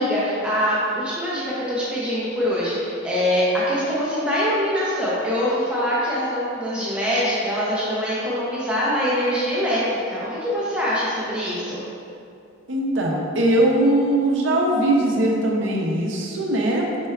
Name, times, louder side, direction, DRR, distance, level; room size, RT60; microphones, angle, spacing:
voice 1, 0.0-11.8, equal, 5° right, -8 dB, 0.5 m, -23 dB
voice 2, 12.7-16.9, right 1 dB, 60° right, -1 dB, 0.5 m, -20 dB
4.3 x 3.2 x 2.3 m, 2.5 s
head